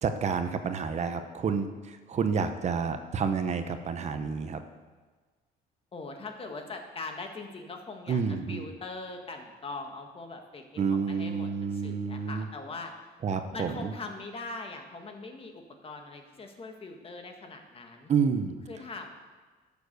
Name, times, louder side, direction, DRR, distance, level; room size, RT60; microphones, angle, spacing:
voice 1, 0.0-4.6 8.1-8.7 10.8-12.5 13.2-13.9 18.1-18.6, right 6 dB, 40° right, 8 dB, 0.8 m, -29 dB
voice 2, 5.9-8.2 8.5-12.9 13.5-18.1 18.7-19.1, left 3 dB, 35° left, 4 dB, 1.6 m, -41 dB
11.5 x 7.0 x 6.6 m, 1.3 s
cardioid pair, 110°, 17 cm